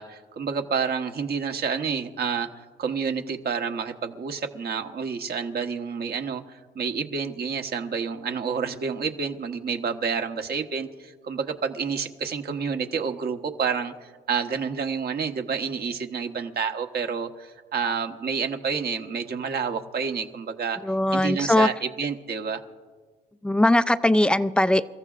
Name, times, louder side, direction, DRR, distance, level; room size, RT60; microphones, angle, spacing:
voice 1, 0.0-2.5 2.8-20.8 21.1-22.6, right 6 dB, 50° right, 5 dB, 1.2 m, -29 dB
voice 2, 20.8-21.7 23.4-24.8, left 1 dB, 5° left, 13 dB, 0.5 m, -20 dB
29.0 x 14.5 x 2.5 m, 1.4 s
cardioid pair, 90°, 20 cm